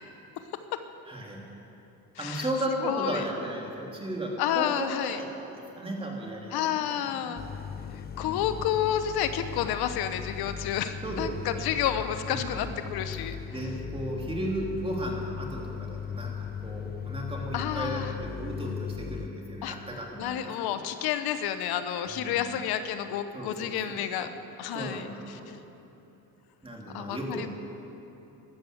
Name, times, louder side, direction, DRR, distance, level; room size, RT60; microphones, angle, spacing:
voice 1, 1.1-1.5 2.2-7.3 8.2-8.5 11.0-11.7 12.3-12.7 13.5-20.3 20.7-20.8 22.1-22.4 23.3-24.4 24.7-25.6 26.6-27.5, right 1 dB, 15° right, -1 dB, 2.9 m, -35 dB
voice 2, 2.2-2.5 2.8-3.2 4.4-5.2 6.5-7.4 7.9-13.4 17.5-18.1 19.6-19.8 20.2-24.3 24.6-25.4 26.9-27.5, left 10 dB, 80° left, 10 dB, 0.9 m, -30 dB
sound 1, 7.4-19.3, left 7 dB, 25° left, 0.6 m, -38 dB
13.0 x 12.5 x 7.9 m, 2.9 s
cardioid pair, 120°, 37 cm